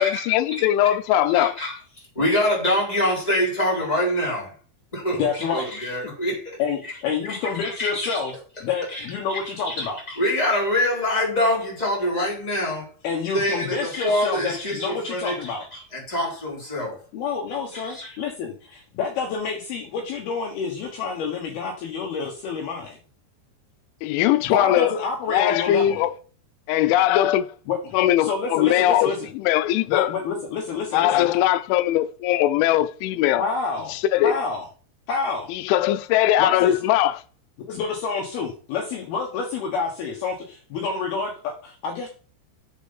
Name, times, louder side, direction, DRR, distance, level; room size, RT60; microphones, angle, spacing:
voice 1, 0.0-1.6 24.0-24.9 25.3-26.2 26.7-27.5 27.9-30.1 30.9-33.5 33.9-34.4 35.5-37.2, left 12 dB, 90° left, 3.0 m, -20 dB
voice 2, 1.3-1.7 2.2-4.5 4.9-5.2 5.5-6.5 6.8-6.9 7.3-7.5 7.8-8.2 8.9-9.0 9.3-9.4 9.6-9.9 10.1-12.9 13.3-17.0 17.7-18.2, left 1 dB, 10° left, 3.9 m, -25 dB
voice 3, 5.2-5.7 6.6-8.3 8.6-10.0 13.0-15.7 17.1-23.0 24.4-26.0 27.7-29.3 29.9-31.3 33.4-34.0 34.2-34.7 35.1-35.5 36.4-36.7 37.7-42.1, left 5 dB, 70° left, 2.8 m, -28 dB
7.1 x 6.7 x 5.7 m
omnidirectional pair, 5.3 m